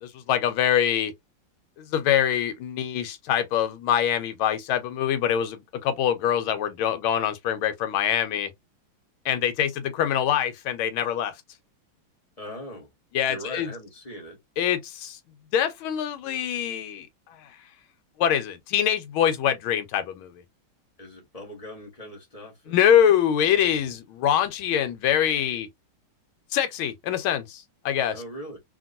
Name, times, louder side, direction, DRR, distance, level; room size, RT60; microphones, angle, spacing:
voice 1, 0.0-1.1 1.9-8.5 9.2-11.3 13.1-13.7 14.6-15.2 15.5-17.1 18.2-20.3 22.7-25.7 26.5-28.2, left 9 dB, 80° left, 1.4 m, -24 dB
voice 2, 12.4-12.9 13.2-14.4 21.0-22.8 28.1-28.6, left 1 dB, 25° left, 0.8 m, -40 dB
2.9 x 2.9 x 2.5 m
omnidirectional pair, 2.3 m